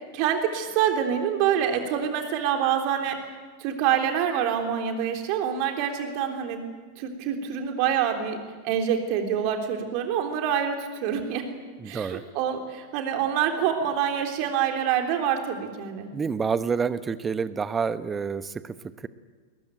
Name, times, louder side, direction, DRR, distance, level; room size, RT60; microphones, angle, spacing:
voice 1, 0.1-3.2 3.6-6.6 7.0-8.4 8.6-11.5 11.8-16.1, right 8 dB, 45° right, 4 dB, 3.5 m, -26 dB
voice 2, 11.8-12.2 16.1-19.1, right 5 dB, 20° right, 14 dB, 1.1 m, -28 dB
22.0 x 21.0 x 9.1 m, 1.5 s
figure-of-eight pair, 90°, 0 cm